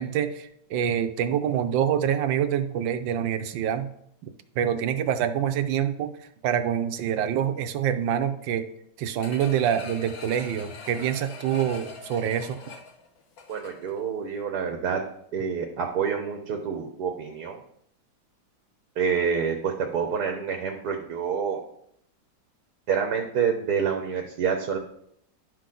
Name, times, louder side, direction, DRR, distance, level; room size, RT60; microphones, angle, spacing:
voice 1, 0.0-3.9 4.6-6.1 6.4-8.6 9.0-12.6, right 9 dB, 85° right, 9 dB, 1.4 m, -26 dB
sound 1, 9.2-14.0 14.4-14.5, left 4 dB, 60° left, 1.4 m, -43 dB
voice 2, 13.5-15.0 15.3-17.6 19.0-21.6 22.9-24.8, right 6 dB, 65° right, 4 dB, 1.4 m, -27 dB
11.0 x 6.2 x 3.8 m, 0.71 s
omnidirectional pair, 2.0 m